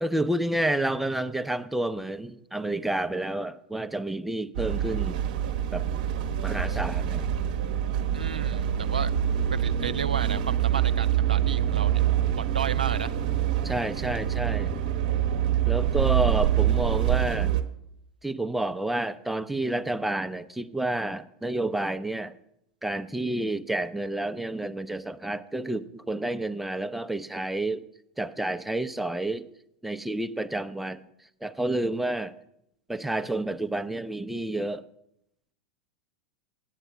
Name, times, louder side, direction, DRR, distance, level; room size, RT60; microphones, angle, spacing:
voice 1, 0.0-5.2 5.7-5.9 6.4-7.3 13.6-14.7 15.7-17.5 18.2-22.3 22.8-27.8 28.2-29.5 29.8-31.0 31.4-32.3 32.9-34.9, right 1 dB, 5° right, 10 dB, 0.5 m, -29 dB
sound 1, 4.5-17.6, right 10 dB, 65° right, 0.8 m, -25 dB
voice 2, 8.1-9.1 9.5-12.0 12.3-13.2, right 7 dB, 90° right, 12 dB, 0.4 m, -33 dB
9.0 x 8.1 x 6.1 m, 0.78 s
hypercardioid pair, 95°, 4 cm